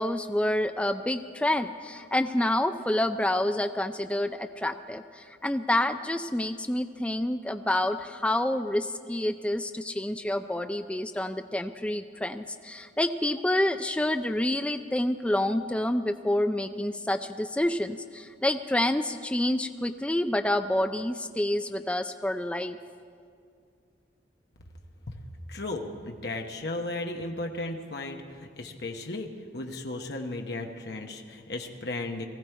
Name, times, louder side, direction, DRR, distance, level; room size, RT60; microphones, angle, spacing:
voice 1, 0.0-22.8, left 1 dB, 5° left, 8 dB, 0.3 m, -28 dB
voice 2, 25.5-32.3, left 2 dB, 60° left, 3 dB, 1.0 m, -35 dB
19.5 x 15.0 x 4.6 m, 2.3 s
head